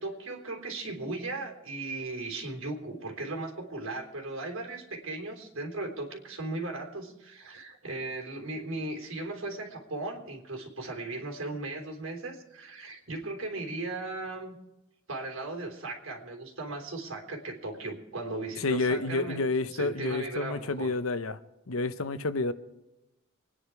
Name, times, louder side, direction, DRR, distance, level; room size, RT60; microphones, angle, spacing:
voice 1, 0.0-14.6 15.1-20.9, right 2 dB, 70° right, 3.7 m, -37 dB
voice 2, 18.6-21.4 21.7-22.5, left 3 dB, 80° left, 0.8 m, -29 dB
25.0 x 10.0 x 4.8 m
head